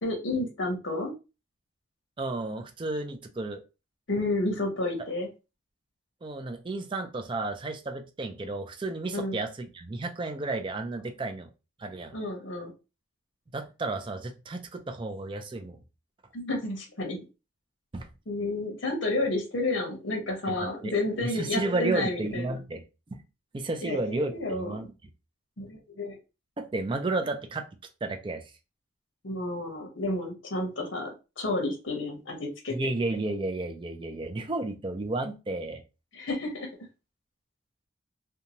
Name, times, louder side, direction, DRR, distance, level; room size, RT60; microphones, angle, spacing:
voice 1, 0.0-1.1 4.1-5.3 9.1-9.4 12.1-12.7 16.3-17.2 18.3-22.6 23.8-24.7 25.6-26.2 29.2-32.7 36.1-36.7, left 2 dB, 75° left, 2 dB, 0.8 m, -31 dB
voice 2, 2.2-3.6 6.2-11.5 11.8-12.2 13.5-15.8 17.9-18.1 20.5-20.6 20.8-20.9 21.2-22.8 23.1-23.2 23.5-24.9 26.6-27.6 28.0-28.5 32.7-35.8, right 2 dB, 25° right, 6 dB, 0.4 m, -32 dB
2.6 x 2.3 x 2.8 m, 0.29 s
head